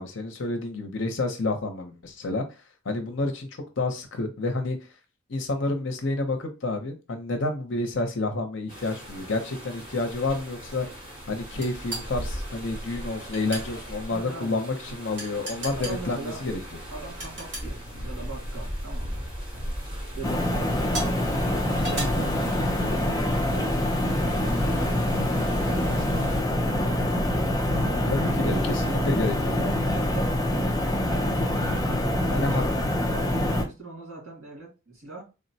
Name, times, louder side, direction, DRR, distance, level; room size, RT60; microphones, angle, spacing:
voice 1, 0.0-2.4 2.8-4.8 5.3-10.9 11.3-16.6 28.1-29.9 32.3-32.6, left 2 dB, 65° left, 5 dB, 0.7 m, -29 dB
sound 1, 8.7-26.4, equal, 25° right, 1.3 m, -38 dB
sound 2, 11.6-12.1 13.3-13.7 15.2-16.0 17.2-17.7 18.7-19.0 19.6-19.7 20.9-21.2 21.8-22.0, right 2 dB, 60° right, 1.8 m, -34 dB
voice 2, 14.1-14.6 14.9-15.0 15.6-16.4 16.9-19.2 19.5-19.7 20.1-21.2 21.5-23.8 24.3-25.4 25.7-26.3 27.8-31.2 31.9-35.2, right 3 dB, 80° right, -2 dB, 1.9 m, -40 dB
sound 3, 20.2-33.6, left 1 dB, 20° left, 0.4 m, -25 dB
3.6 x 2.1 x 2.7 m, 0.29 s
head